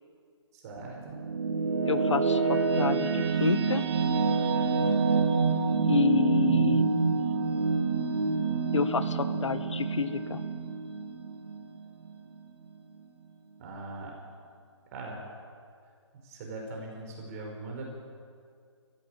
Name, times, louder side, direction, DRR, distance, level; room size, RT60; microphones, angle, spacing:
voice 1, 0.5-1.2 13.6-14.2 14.9-15.2 16.2-17.8, right 2 dB, 30° right, 0 dB, 5.2 m, -40 dB
sound 1, 0.8-12.1, right 4 dB, 60° right, 2.4 m, -27 dB
voice 2, 1.8-3.8 5.9-7.3 8.7-10.4, left 5 dB, 80° left, 11 dB, 1.6 m, -29 dB
25.5 x 15.5 x 9.0 m, 2.2 s
hypercardioid pair, 155°, 15 cm